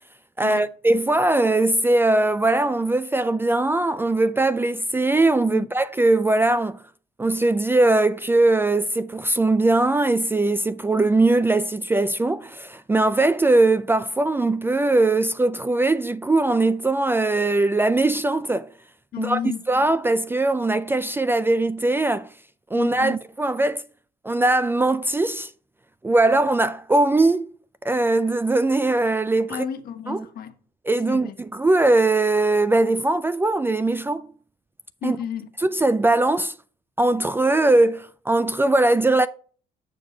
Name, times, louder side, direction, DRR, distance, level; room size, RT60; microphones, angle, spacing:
voice 1, 0.4-6.8 7.2-18.7 19.2-19.4 19.7-22.3 22.7-23.8 24.2-25.5 26.0-27.5 27.8-29.6 30.1-30.2 30.9-34.3 35.0-35.2 35.6-36.5 37.0-39.3, right 2 dB, 15° right, 0.3 m, -20 dB
voice 2, 19.1-19.6 22.7-23.2 29.5-30.6 31.1-31.5 35.0-35.5, left 8 dB, 65° left, 1.4 m, -32 dB
7.3 x 6.7 x 3.9 m
cardioid pair, 110°, 17 cm